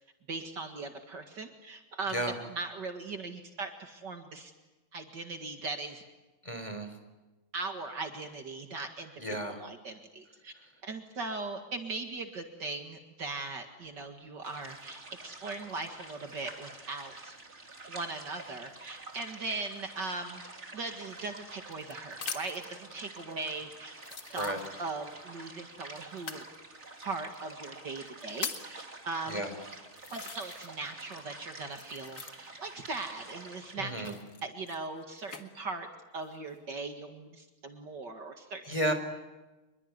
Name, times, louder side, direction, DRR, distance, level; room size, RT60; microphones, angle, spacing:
voice 1, 0.3-2.2 2.5-4.5 4.9-6.0 7.5-10.5 10.8-17.4 17.9-20.4 20.7-23.9 24.3-24.5 24.8-26.4 27.0-29.4 30.1-35.9 36.1-38.8, right 3 dB, 55° right, 5 dB, 2.5 m, -39 dB
voice 2, 6.4-6.9 9.2-9.6 24.4-24.6 29.3-29.6 33.8-34.2 38.7-38.9, right 1 dB, 15° left, 7 dB, 4.0 m, -33 dB
sound 1, 14.4-33.8, right 2 dB, 30° right, 3.0 m, -48 dB
sound 2, 21.1-22.7 23.4-23.5 24.0-25.1 26.1-26.5 27.3-27.4 28.0-28.8 29.5-29.6 30.0-30.9 31.1-32.7 33.9-35.4 36.1-36.6, left 5 dB, 50° left, 2.3 m, -42 dB
27.0 x 22.5 x 9.6 m, 1.1 s
omnidirectional pair, 2.3 m